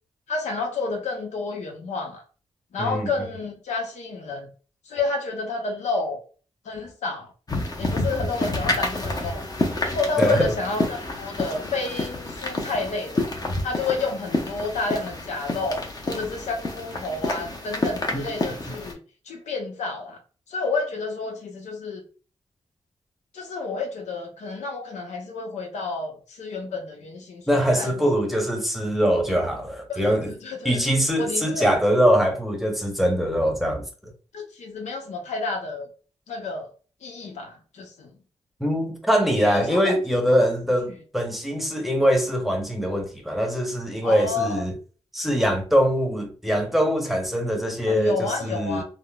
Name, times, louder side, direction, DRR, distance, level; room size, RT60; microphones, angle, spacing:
voice 1, 0.3-2.2 2.7-4.5 4.9-6.2 6.6-7.3 7.8-9.4 9.8-13.3 13.6-19.0 19.3-20.2 20.5-22.0 23.3-27.4 27.8-28.1 29.9-30.8 31.2-31.8 34.3-35.9 36.3-36.7 37.0-38.1 39.4-40.0 40.3-40.4 44.0-44.7 47.9-48.8, left 3 dB, 90° left, 0.7 m, -30 dB
voice 2, 2.8-3.1 10.2-10.5 18.1-18.3 27.5-30.3 30.6-34.1 38.6-44.7 45.1-48.8, equal, ahead, 0.8 m, -23 dB
sound 1, 7.5-18.9, left 2 dB, 35° left, 0.8 m, -29 dB
3.5 x 2.0 x 2.2 m
cardioid pair, 65°, 12 cm